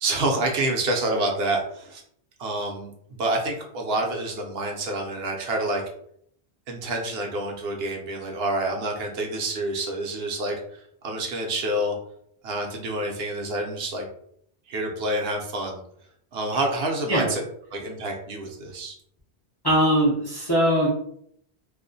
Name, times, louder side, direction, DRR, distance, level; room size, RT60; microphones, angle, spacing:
voice 1, 0.0-2.0 2.4-2.9 3.2-5.8 6.7-12.0 12.4-14.1 14.7-15.8 16.3-17.4 17.7-19.0, right 2 dB, 70° right, 1 dB, 0.8 m, -28 dB
voice 2, 19.6-20.9, equal, 30° left, -5 dB, 0.4 m, -21 dB
2.4 x 2.1 x 2.6 m, 0.69 s
omnidirectional pair, 1.1 m